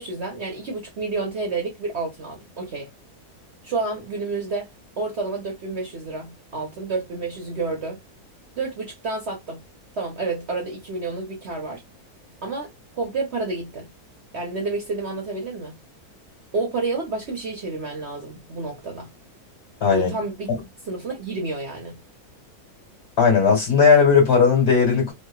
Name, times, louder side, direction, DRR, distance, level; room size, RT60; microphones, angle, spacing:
voice 1, 0.0-2.9 3.6-4.7 5.0-8.0 8.6-9.6 9.9-11.8 12.4-12.7 13.0-13.9 14.3-15.8 16.5-19.1 19.9-20.5 20.8-22.0, right 3 dB, 55° right, 0.8 m, -29 dB
voice 2, 19.8-20.1 23.2-25.1, left 5 dB, 40° left, 1.4 m, -16 dB
2.7 x 2.6 x 2.2 m
omnidirectional pair, 1.7 m